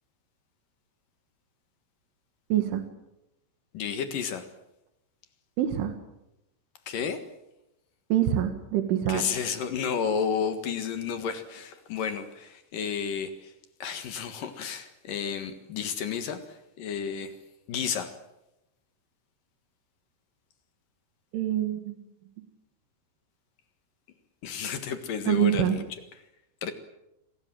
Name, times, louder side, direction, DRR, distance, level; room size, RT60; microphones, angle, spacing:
voice 1, 2.5-2.8 5.6-5.9 8.1-9.2 21.3-22.0 25.3-25.8, right 11 dB, 70° right, 7 dB, 4.0 m, -25 dB
voice 2, 3.7-4.5 6.9-7.2 9.1-13.5 13.8-17.3 17.7-18.1 24.4-26.0 26.6-26.7, left 7 dB, 60° left, 8 dB, 2.5 m, -31 dB
29.0 x 21.0 x 7.7 m, 0.89 s
omnidirectional pair, 5.9 m